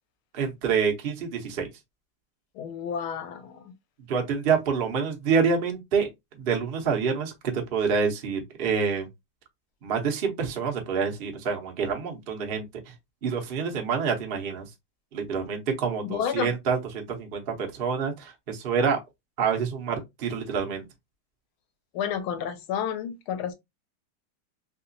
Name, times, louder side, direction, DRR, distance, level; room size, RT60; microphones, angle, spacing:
voice 1, 0.3-1.7 4.1-6.1 6.4-9.1 9.8-12.7 13.2-14.6 15.1-19.0 19.4-20.8, right 6 dB, 85° right, 0.5 m, -27 dB
voice 2, 2.5-3.7 16.0-16.5 21.9-23.5, left 8 dB, 80° left, 1.5 m, -31 dB
3.5 x 2.8 x 2.6 m
omnidirectional pair, 2.3 m